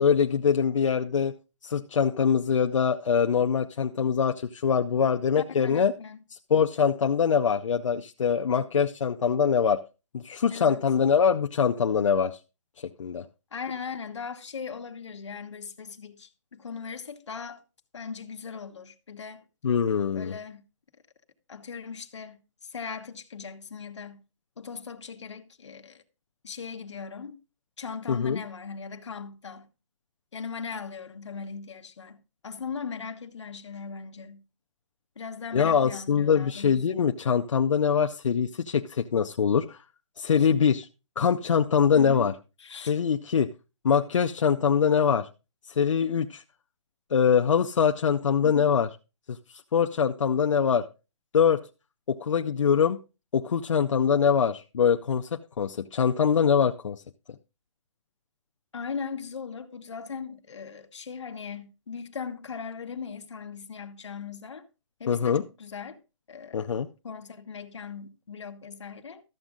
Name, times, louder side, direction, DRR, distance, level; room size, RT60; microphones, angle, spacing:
voice 1, 0.0-1.3 1.6-5.9 6.5-9.8 10.1-12.4 12.8-13.2 19.6-20.4 28.1-28.4 35.5-39.8 40.2-40.9 41.2-42.3 42.8-43.5 43.8-45.3 45.7-46.4 47.1-48.9 49.3-50.8 51.3-51.6 52.1-53.0 53.3-57.0 65.1-65.4 66.5-66.9, left 7 dB, 90° left, 0.6 m, -23 dB
voice 2, 5.4-6.2 10.5-10.8 13.5-17.6 17.9-19.4 20.1-20.6 21.5-24.2 24.6-26.0 26.4-27.4 27.8-29.7 30.3-34.4 35.2-37.1 40.4-40.5 41.9-42.3 42.6-42.9 48.4-48.6 58.7-64.6 65.0-66.0 66.3-66.7 67.0-69.2, left 6 dB, 70° left, 1.3 m, -39 dB
13.0 x 7.3 x 3.7 m
hypercardioid pair, 180°, 16 cm